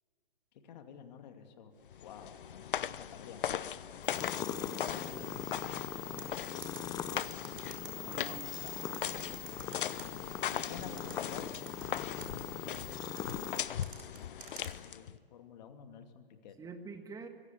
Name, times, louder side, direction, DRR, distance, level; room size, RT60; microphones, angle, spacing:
voice 1, 0.6-1.7 2.0-4.5 7.9-8.8 10.4-11.4 12.3-12.4 14.7-16.5, left 8 dB, 50° left, 6 dB, 2.6 m, -51 dB
sound 1, 1.9-15.2, left 9 dB, 65° left, 0.8 m, -39 dB
sound 2, 4.0-13.6, left 9 dB, 15° left, 0.6 m, -41 dB
voice 2, 4.8-5.4 8.1-8.5 10.5-11.2 13.0-13.6 16.6-17.3, right 4 dB, 10° right, 7 dB, 1.6 m, -49 dB
sound 3, 6.2-10.1 10.6-12.3 12.7-14.7, right 8 dB, 60° right, 5.5 m, -50 dB
24.5 x 16.5 x 8.5 m, 2.1 s
hypercardioid pair, 130°, 29 cm